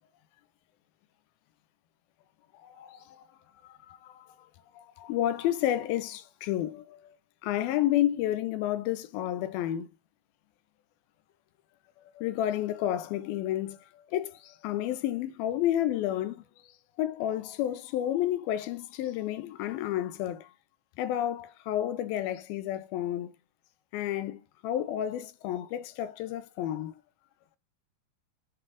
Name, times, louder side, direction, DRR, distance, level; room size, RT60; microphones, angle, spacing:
voice 1, 2.6-3.2 3.6-4.2 4.8-7.0 7.4-9.9 12.2-13.8 14.1-16.4 17.0-20.5 21.0-23.3 23.9-27.0, left 12 dB, 80° left, 2.5 m, -31 dB
7.7 x 3.7 x 4.8 m
omnidirectional pair, 4.3 m